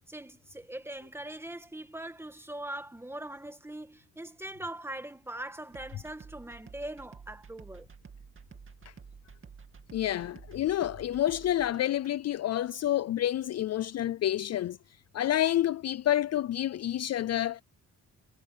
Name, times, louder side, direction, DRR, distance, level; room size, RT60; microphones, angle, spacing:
voice 1, 0.1-7.9, right 1 dB, 5° right, 1.9 m, -41 dB
sound 1, 5.7-12.1, right 5 dB, 40° right, 2.5 m, -51 dB
voice 2, 9.9-14.8 15.1-17.6, left 12 dB, 50° left, 0.4 m, -28 dB
cardioid pair, 120°, 32 cm